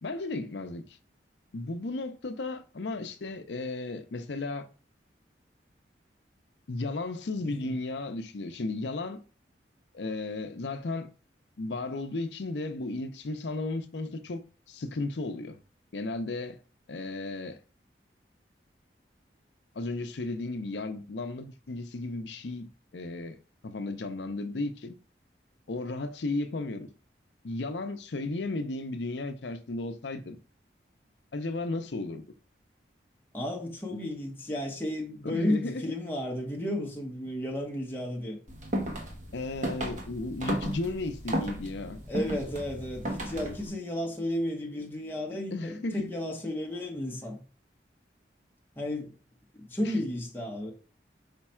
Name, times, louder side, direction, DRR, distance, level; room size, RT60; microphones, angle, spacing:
voice 1, 0.0-0.8 1.5-4.7 6.7-9.2 9.9-11.1 11.6-14.4 14.7-15.5 15.9-16.6 16.9-17.6 19.8-22.7 22.9-23.4 23.6-25.0 25.7-26.9 27.4-30.4 31.3-32.2 35.2-35.9 39.3-42.0 45.5-46.0 49.8-49.9, left 2 dB, 75° left, 0.6 m, -34 dB
voice 2, 7.4-7.8 33.3-38.4 42.1-47.4 48.8-49.1 49.6-50.7, left 1 dB, 10° left, 0.8 m, -33 dB
sound 1, 38.5-43.7, right 1 dB, 40° right, 1.0 m, -34 dB
5.1 x 2.3 x 4.3 m
head